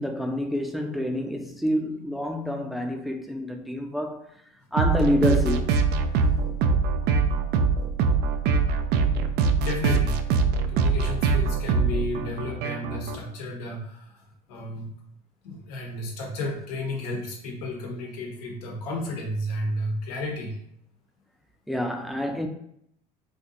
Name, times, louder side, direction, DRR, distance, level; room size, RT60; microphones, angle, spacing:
voice 1, 0.0-4.2 4.7-5.8 21.7-22.5, equal, ahead, 0.6 m, -27 dB
sound 1, 4.8-13.2, right 5 dB, 55° right, 0.5 m, -23 dB
voice 2, 9.6-10.2 10.7-14.9 15.4-20.6, left 1 dB, 80° left, 1.2 m, -32 dB
4.2 x 2.7 x 2.6 m
hypercardioid pair, 75°, 20 cm